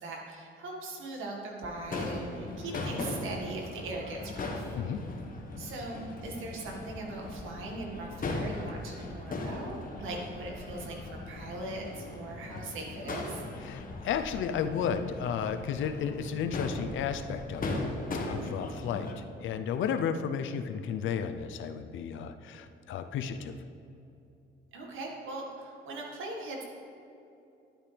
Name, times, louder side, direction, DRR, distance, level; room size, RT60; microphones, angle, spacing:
voice 1, 0.0-4.7 5.6-13.4 24.7-26.6, right 2 dB, 80° right, 0 dB, 1.9 m, -40 dB
sound 1, 1.6-13.9 14.4-14.5, left 2 dB, 20° left, 1.0 m, -50 dB
Crowd / Fireworks, 1.8-19.1, left 2 dB, 45° left, 1.5 m, -39 dB
voice 2, 13.6-17.8 18.3-23.6, left 7 dB, 75° left, 9 dB, 0.6 m, -33 dB
11.5 x 8.9 x 3.4 m, 2.7 s
cardioid pair, 90°, 20 cm